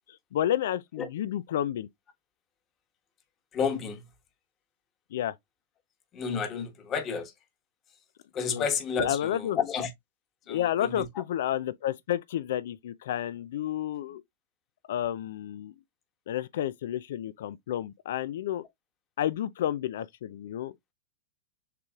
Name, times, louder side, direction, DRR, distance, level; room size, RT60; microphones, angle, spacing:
voice 1, 0.1-1.9 5.1-5.3 8.5-8.7 9.0-9.6 10.5-14.2 14.9-15.7 16.3-18.6 19.2-20.7, left 11 dB, 70° left, 0.4 m, -31 dB
voice 2, 3.5-4.0 6.1-7.3 8.3-9.9 10.5-11.1, left 6 dB, 30° left, 1.3 m, -31 dB
6.6 x 3.1 x 2.4 m
hypercardioid pair, 115°, 0 cm